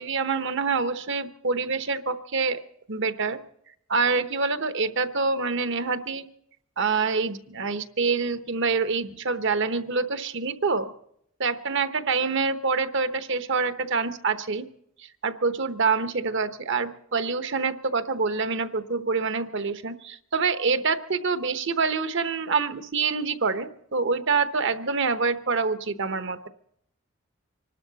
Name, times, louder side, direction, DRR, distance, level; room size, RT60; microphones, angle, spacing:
voice 1, 0.0-2.6 2.9-3.4 3.9-6.3 6.8-10.9 11.4-14.7 15.0-26.5, right 4 dB, 60° right, 10 dB, 1.0 m, -26 dB
25.5 x 12.5 x 4.0 m, 0.71 s
head